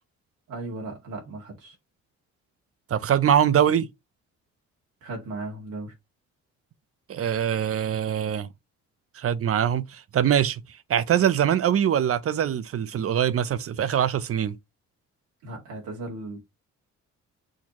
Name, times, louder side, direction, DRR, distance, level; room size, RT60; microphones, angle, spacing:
voice 1, 0.5-1.8 5.0-5.9 15.4-16.4, right 2 dB, 80° right, 2.0 m, -36 dB
voice 2, 2.9-3.9 7.1-8.5 9.1-10.6 10.9-14.5, right 9 dB, 50° right, 0.7 m, -23 dB
6.5 x 2.8 x 3.0 m
cardioid pair, 90°, 30 cm